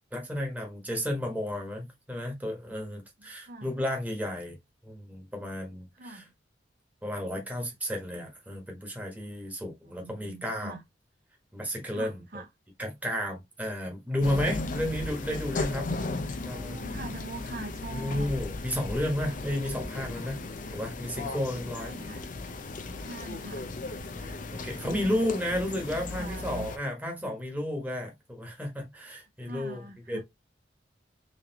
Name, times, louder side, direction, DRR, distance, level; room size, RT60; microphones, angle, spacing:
voice 1, 0.1-4.6 4.8-6.2 7.0-10.8 11.5-12.2 12.8-15.9 16.4-16.8 17.9-20.4 20.7-21.9 24.2-30.2, left 1 dB, 10° right, 1.3 m, -32 dB
voice 2, 3.2-3.7 5.9-6.3 9.9-10.8 11.9-12.5 16.4-18.3 21.7-22.3 22.9-23.7 24.8-25.7 26.2-26.7 29.4-30.2, right 2 dB, 55° right, 0.7 m, -43 dB
sound 1, 14.2-26.8, left 2 dB, 45° left, 0.6 m, -36 dB
3.9 x 3.1 x 2.8 m
head